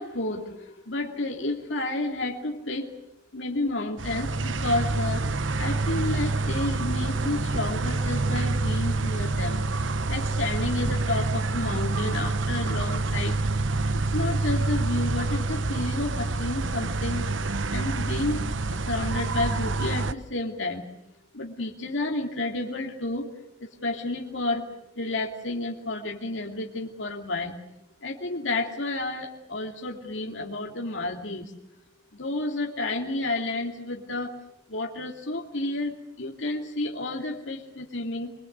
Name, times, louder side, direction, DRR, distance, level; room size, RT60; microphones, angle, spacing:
voice 1, 0.0-2.9 3.3-5.2 5.6-13.4 13.9-17.3 17.7-20.9 21.3-23.3 23.6-24.6 25.0-27.6 28.0-31.5 32.1-34.4 34.7-38.3, left 2 dB, 75° left, 1 dB, 2.8 m, -31 dB
sound 1, 4.0-20.1, right 3 dB, 80° right, 1.0 m, -27 dB
24.5 x 23.5 x 8.1 m, 0.77 s
head